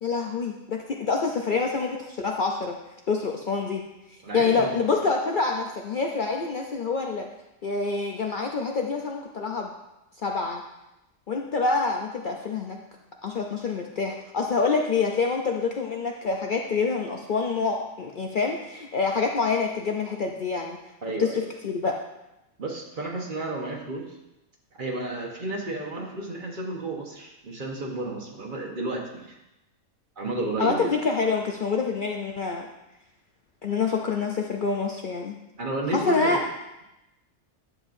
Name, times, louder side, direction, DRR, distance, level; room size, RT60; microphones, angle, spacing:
voice 1, 0.0-2.8 3.1-3.8 4.1-7.3 7.6-9.7 10.2-10.6 11.3-12.8 13.2-20.8 21.2-21.9 30.6-32.7 33.6-35.4 35.9-36.4, left 4 dB, 50° left, 1 dB, 0.6 m, -26 dB
voice 2, 4.2-4.8 21.0-21.5 22.6-24.2 24.8-29.4 30.2-30.9 35.6-36.4, right 2 dB, 40° right, 0 dB, 1.2 m, -32 dB
11.0 x 7.2 x 2.6 m, 0.93 s
omnidirectional pair, 1.3 m